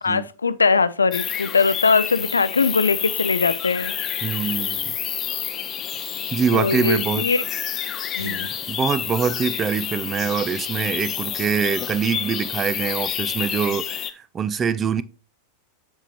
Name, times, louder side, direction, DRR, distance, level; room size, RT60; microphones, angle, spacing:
voice 1, 0.0-3.9 6.5-7.4 8.2-8.5, left 4 dB, 85° left, 0.3 m, -21 dB
sound 1, 1.1-14.1, left 9 dB, 30° left, 0.6 m, -29 dB
voice 2, 4.2-4.9 6.3-7.3 8.2-15.0, right 7 dB, 25° right, 0.4 m, -24 dB
7.3 x 5.5 x 2.9 m
figure-of-eight pair, 90°, 0 cm